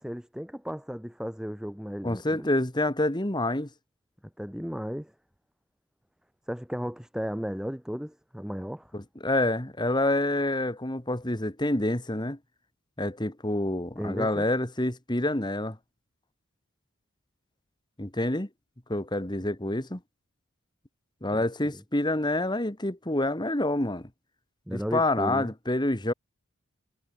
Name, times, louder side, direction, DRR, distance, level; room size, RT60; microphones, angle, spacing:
voice 1, 0.0-2.5 4.4-5.1 6.5-8.9 14.0-14.5 21.3-21.4 24.7-25.5, equal, 5° right, 1.3 m, -35 dB
voice 2, 2.0-3.7 8.9-12.4 13.0-15.8 18.0-18.5 18.9-20.0 21.2-24.1 24.7-26.1, left 1 dB, 20° left, 1.9 m, -27 dB
head